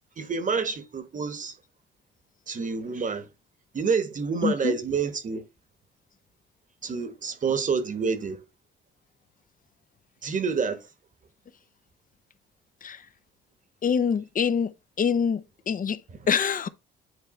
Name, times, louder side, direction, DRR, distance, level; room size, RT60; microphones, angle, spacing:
voice 1, 0.2-1.6 2.5-3.3 3.7-5.4 6.8-8.4 10.2-10.9 16.1-16.2, right 5 dB, 40° right, 1.5 m, -28 dB
voice 2, 4.4-4.7 12.8-13.0 13.8-14.7 15.0-16.0 16.3-16.7, left 6 dB, 45° left, 0.8 m, -25 dB
9.4 x 3.2 x 4.4 m
cardioid pair, 90°, 20 cm